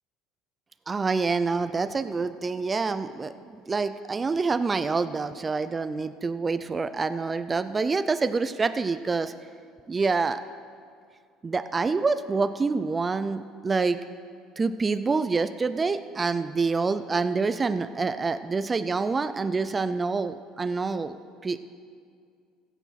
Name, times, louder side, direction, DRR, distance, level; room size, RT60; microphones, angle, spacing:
voice 1, 0.9-9.3 9.9-10.4 11.4-14.0 14.6-21.2 21.4-21.6, right 4 dB, 25° right, 11 dB, 0.5 m, -27 dB
16.0 x 7.1 x 5.8 m, 2.2 s
supercardioid pair, 85°, 0 cm